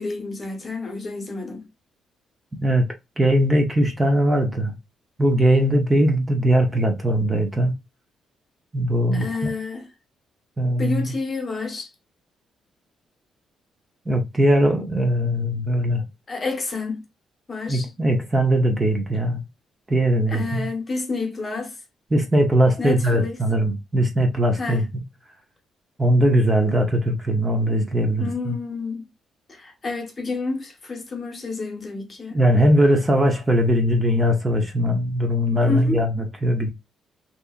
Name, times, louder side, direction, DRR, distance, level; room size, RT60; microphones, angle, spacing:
voice 1, 0.0-1.6 9.1-9.9 10.8-11.9 16.3-17.0 17.5-17.9 20.3-21.8 22.8-23.4 24.6-24.9 28.2-29.1 29.5-32.4 35.7-36.0, left 3 dB, 30° left, 1.0 m, -29 dB
voice 2, 3.2-4.7 5.2-7.7 8.7-9.2 10.6-11.0 14.1-16.0 17.7-19.4 19.9-20.7 22.1-24.9 26.0-28.5 32.3-36.7, equal, 20° right, 0.7 m, -20 dB
2.7 x 2.5 x 2.4 m
cardioid pair, 90°, 0 cm